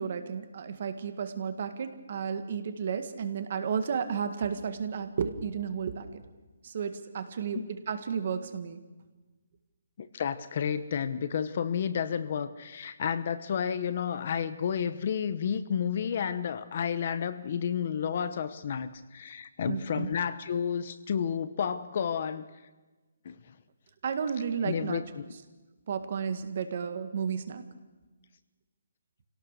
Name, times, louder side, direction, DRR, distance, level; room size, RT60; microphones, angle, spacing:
voice 1, 0.0-6.2 6.6-7.6 7.9-8.8 19.6-20.1 24.0-25.0 25.9-27.7, right 6 dB, 40° right, 9 dB, 1.8 m, -32 dB
voice 2, 10.0-22.4 23.2-23.4 24.6-25.3, left 7 dB, 35° left, 13 dB, 0.9 m, -31 dB
25.5 x 18.0 x 6.7 m, 1.2 s
hypercardioid pair, 175°, 0 cm